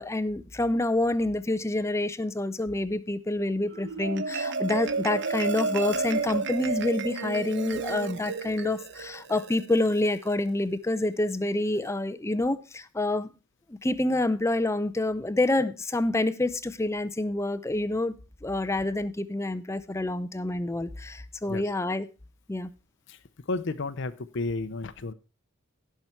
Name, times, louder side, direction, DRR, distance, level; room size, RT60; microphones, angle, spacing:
voice 1, 0.0-13.3 13.7-18.1 18.4-22.1 22.5-22.7, left 2 dB, 15° left, 0.5 m, -27 dB
Marimba xylophone, 3.7-10.3, right 4 dB, 55° right, 0.8 m, -32 dB
voice 2, 23.5-25.1, left 3 dB, 55° left, 0.6 m, -32 dB
16.5 x 5.7 x 4.5 m
head